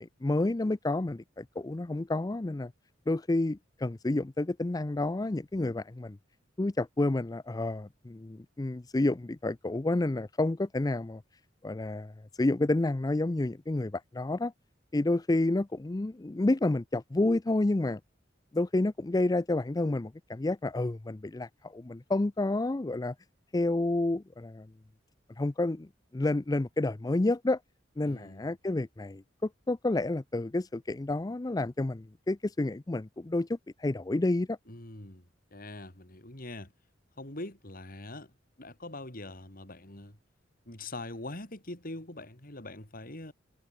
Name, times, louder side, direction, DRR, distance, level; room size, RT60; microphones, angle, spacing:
voice 1, 0.0-2.7 3.1-6.2 6.6-11.2 11.6-12.1 12.4-14.5 14.9-18.0 18.5-23.1 23.5-24.7 25.4-25.9 26.1-27.6 28.0-29.2 29.7-34.6, left 2 dB, 20° left, 0.5 m, -29 dB
voice 2, 28.0-28.5 34.7-36.7 37.2-38.3 38.6-40.2 40.7-43.3, left 2 dB, 50° left, 3.8 m, -43 dB
head